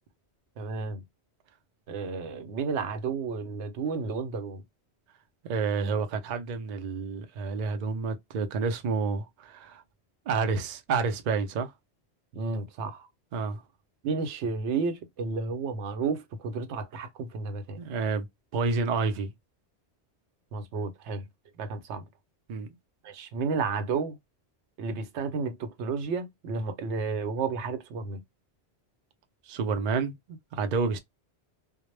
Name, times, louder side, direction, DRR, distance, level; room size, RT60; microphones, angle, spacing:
voice 1, 0.6-1.0 1.9-4.6 12.3-13.1 14.0-17.8 20.5-21.3 21.6-22.1 23.0-24.2 24.8-28.2, right 4 dB, 85° right, 0.9 m, -32 dB
voice 2, 5.5-9.8 10.3-11.7 13.3-13.6 17.8-18.3 18.5-19.3 22.5-22.7 29.4-31.0, right 4 dB, 60° right, 0.5 m, -29 dB
2.0 x 2.0 x 3.0 m
omnidirectional pair, 1.1 m